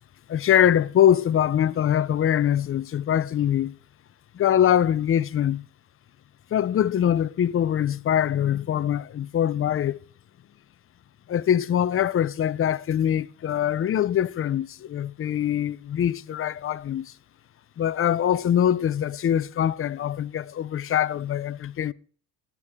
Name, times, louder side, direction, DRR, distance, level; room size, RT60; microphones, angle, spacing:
voice 1, 0.3-3.7 4.3-5.6 6.5-10.0 11.3-17.1 17.8-21.9, left 10 dB, 35° left, 0.5 m, -23 dB
23.5 x 8.3 x 3.6 m
cardioid pair, 120°, 40 cm